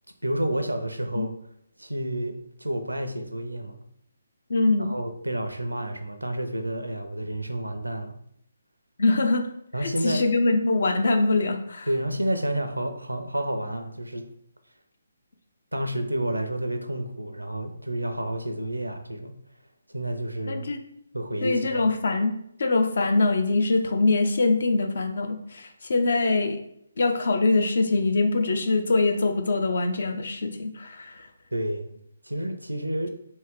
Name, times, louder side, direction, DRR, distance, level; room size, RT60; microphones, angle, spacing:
voice 1, 0.2-1.3 1.8-3.8 4.8-8.2 9.7-10.3 11.9-14.3 15.7-19.3 19.9-20.7 21.1-21.9 31.5-32.0 32.2-33.1, right 1 dB, 85° right, 7 dB, 0.5 m, -30 dB
voice 2, 4.5-4.9 9.0-9.5 9.8-11.9 20.5-20.8 21.4-22.3 22.6-26.6 27.0-31.3, left 3 dB, 55° left, 6 dB, 0.5 m, -23 dB
3.1 x 2.8 x 3.5 m, 0.74 s
figure-of-eight pair, 140°, 0 cm